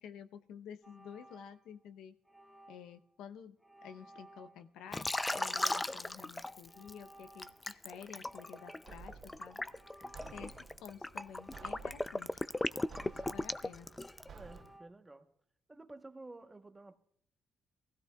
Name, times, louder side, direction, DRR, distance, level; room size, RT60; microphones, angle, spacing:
voice 1, 0.0-2.1 2.7-3.6 3.8-9.6 10.3-10.5 10.8-12.4 13.0-13.9, left 8 dB, 85° left, 0.7 m, -51 dB
sound 1, 0.8-1.9 2.2-3.0 3.6-4.7 5.3-6.1 6.6-7.9 8.2-9.0 9.6-10.7 11.3-12.2 12.7-14.0 14.4-14.9, right 1 dB, ahead, 1.5 m, -58 dB
Liquid, 4.9-6.9 7.4-14.4, left 2 dB, 15° left, 0.4 m, -37 dB
sound 2, 8.8-14.6, right 5 dB, 60° right, 3.2 m, -54 dB
voice 2, 10.0-10.6 14.3-15.3 15.7-17.0, right 2 dB, 15° right, 1.0 m, -53 dB
22.5 x 16.0 x 2.3 m
cardioid pair, 90°, 0 cm